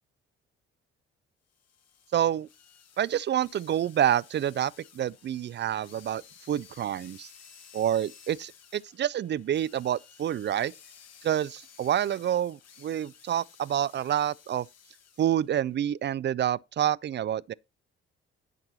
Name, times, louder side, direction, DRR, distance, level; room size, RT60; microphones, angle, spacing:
sound 1, 1.5-15.5, left 7 dB, 50° left, 1.3 m, -55 dB
voice 1, 2.1-2.5 3.0-6.2 6.5-7.3 7.7-10.7 11.2-14.7 15.2-17.5, right 10 dB, 35° right, 0.4 m, -28 dB
11.0 x 5.9 x 4.2 m
figure-of-eight pair, 45°, 33 cm